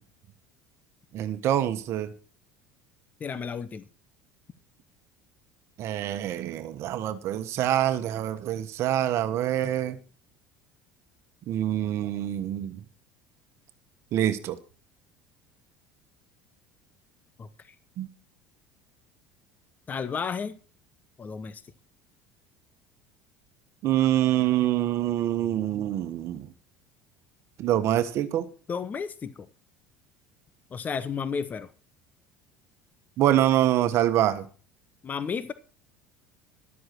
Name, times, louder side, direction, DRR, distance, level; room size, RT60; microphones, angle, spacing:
voice 1, 1.1-2.1 5.8-10.0 11.5-12.8 14.1-14.6 18.0-18.1 23.8-26.5 27.6-28.5 33.2-34.5, right 12 dB, 55° right, 1.3 m, -25 dB
voice 2, 3.2-3.8 17.4-17.5 19.9-20.6 21.2-21.6 25.5-25.6 28.7-29.5 30.7-31.7 35.0-35.5, left 6 dB, 30° left, 1.0 m, -32 dB
12.5 x 7.9 x 6.0 m
supercardioid pair, 95°, 5 cm